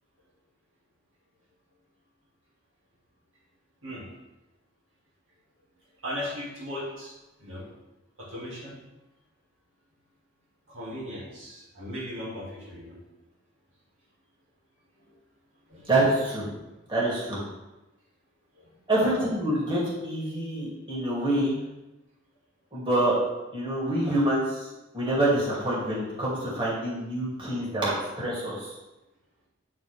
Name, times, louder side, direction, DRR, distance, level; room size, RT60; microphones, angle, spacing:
voice 1, 6.0-7.7 8.2-8.8 10.7-13.0 15.7-15.9 18.6-18.7, left 1 dB, 80° right, -6 dB, 2.3 m, -37 dB
voice 2, 15.8-16.6 16.9-17.4 18.9-21.6 22.7-23.2 23.5-24.7 24.9-28.8, right 1 dB, 25° right, -7 dB, 2.3 m, -26 dB
9.6 x 4.1 x 3.4 m, 1.0 s
head